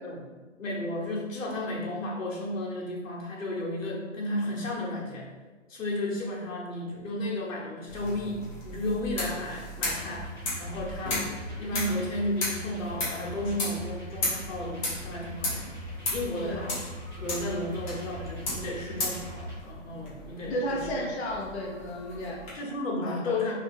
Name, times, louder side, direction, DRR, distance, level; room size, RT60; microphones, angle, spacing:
voice 1, 0.6-5.3 5.7-10.3 10.6-15.6 16.1-16.9 17.2-21.0 22.5-23.5, left 1 dB, 90° left, -3 dB, 1.1 m, -33 dB
sound 1, 7.9-22.5, left 2 dB, 25° left, 0.9 m, -36 dB
sound 2, 9.9-19.5, right 1 dB, 5° left, 1.0 m, -41 dB
voice 2, 20.5-22.4 23.0-23.4, equal, 60° left, -2 dB, 0.6 m, -33 dB
2.7 x 2.4 x 3.4 m, 1.3 s
hypercardioid pair, 155°, 38 cm